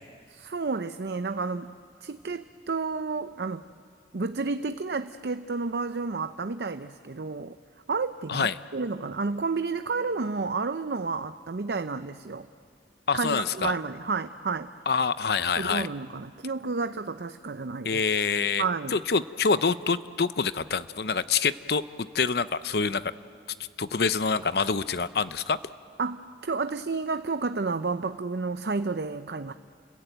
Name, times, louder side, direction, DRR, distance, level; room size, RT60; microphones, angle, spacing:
voice 1, 0.3-1.7 2.0-3.6 4.1-7.6 7.9-12.5 13.1-14.7 15.6-18.0 18.6-19.0 26.0-29.5, right 4 dB, 70° right, 10 dB, 0.6 m, -31 dB
voice 2, 13.1-13.7 14.9-15.9 17.8-18.6 18.9-23.1 23.8-25.6, left 5 dB, 65° left, 14 dB, 0.7 m, -26 dB
30.0 x 21.5 x 9.1 m, 2.2 s
head